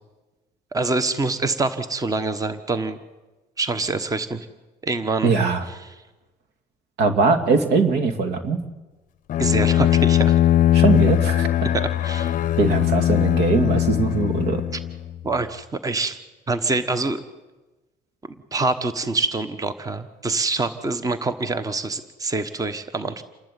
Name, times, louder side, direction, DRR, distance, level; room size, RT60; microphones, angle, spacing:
voice 1, 0.7-3.0 3.6-4.5 4.8-5.3 5.7-5.8 9.4-10.4 11.7-12.4 15.2-16.2 16.5-17.2 18.5-23.2, right 3 dB, 20° right, 12 dB, 1.2 m, -25 dB
voice 2, 5.2-5.6 7.0-8.6 10.7-11.7 12.6-14.6, right 4 dB, 80° right, 9 dB, 2.3 m, -21 dB
Bowed string instrument, 9.3-15.1, left 12 dB, 50° left, 0.6 m, -20 dB
28.5 x 12.0 x 9.1 m, 1.1 s
cardioid pair, 110°, 17 cm